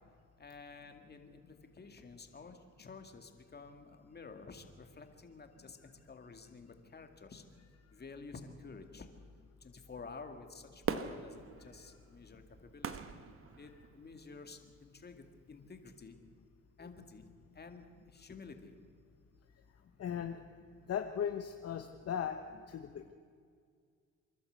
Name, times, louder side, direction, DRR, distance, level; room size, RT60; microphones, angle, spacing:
voice 1, 0.4-1.4 1.8-7.4 7.9-9.1 9.6-12.4 12.7-12.9 13.6-16.1 16.8-17.3 17.5-17.9 18.1-18.7, left 4 dB, 35° left, 6 dB, 2.2 m, -51 dB
Fireworks, 10.8-14.2 14.7-14.8, right 6 dB, 45° right, 1.2 m, -41 dB
voice 2, 20.0-20.4 20.8-23.1, left 8 dB, 50° left, 6 dB, 1.0 m, -38 dB
27.0 x 12.0 x 8.1 m, 2.1 s
cardioid pair, 90°, 30 cm